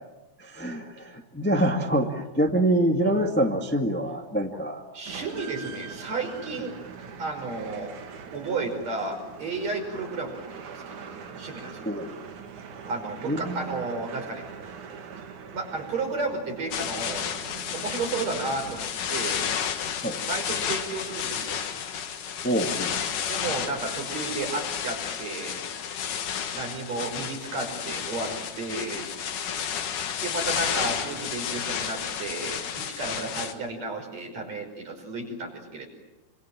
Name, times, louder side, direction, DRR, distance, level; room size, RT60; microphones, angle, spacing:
voice 1, 0.4-4.8 11.8-12.2 13.2-13.7 20.0-20.2 22.4-23.0, right 1 dB, 5° left, 3 dB, 1.3 m, -25 dB
voice 2, 4.9-6.8 7.2-7.9 8.3-11.9 12.9-14.5 15.5-17.3 17.7-19.4 20.2-21.6 22.2-22.3 23.3-25.6 26.5-29.1 30.2-35.9, right 3 dB, 55° right, 3 dB, 6.8 m, -33 dB
sound 1, 5.0-19.3, right 6 dB, 75° right, 3.4 m, -42 dB
sound 2, 16.7-33.5, left 8 dB, 90° left, 3.2 m, -31 dB
26.5 x 26.0 x 7.6 m, 0.99 s
omnidirectional pair, 3.5 m